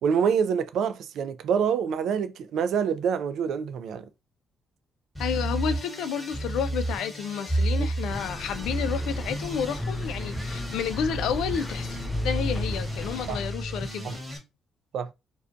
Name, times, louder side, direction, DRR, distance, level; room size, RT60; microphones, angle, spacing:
voice 1, 0.0-4.1 7.8-7.9 13.3-13.4 14.0-14.1 14.9-15.1, right 7 dB, 75° right, 0.3 m, -26 dB
sound 1, 5.1-14.4, right 1 dB, ahead, 1.2 m, -31 dB
voice 2, 5.2-14.2, left 8 dB, 85° left, 0.3 m, -31 dB
sound 2, 8.1-13.5, left 1 dB, 25° left, 0.7 m, -38 dB
2.4 x 2.2 x 2.5 m
cardioid pair, 90°, 0 cm